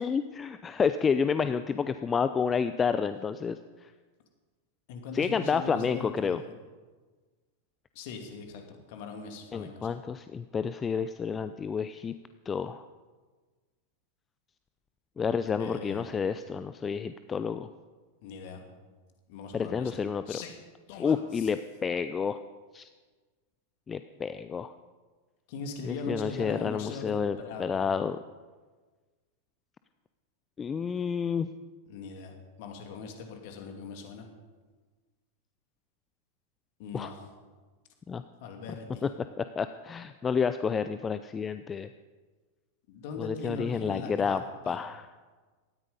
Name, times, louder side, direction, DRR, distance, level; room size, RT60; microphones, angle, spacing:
voice 1, 0.0-3.9 5.1-6.4 9.5-12.1 12.5-12.8 15.2-17.7 19.5-20.4 21.0-22.4 22.7-22.9 23.9-24.7 25.8-28.2 30.6-31.5 36.9-37.1 38.1-38.2 39.0-39.1 39.4-41.9 43.2-45.1, left 6 dB, 20° left, 12 dB, 0.5 m, -30 dB
voice 2, 4.9-6.4 7.9-9.9 15.6-16.1 18.2-18.6 19.3-19.9 20.3-20.6 20.9-21.5 25.5-27.9 31.9-34.3 36.8-37.2 38.4-39.0 42.9-44.4 44.6-44.8, left 4 dB, 50° left, 4 dB, 2.7 m, -40 dB
18.0 x 13.5 x 5.3 m, 1.4 s
figure-of-eight pair, 90°, 0 cm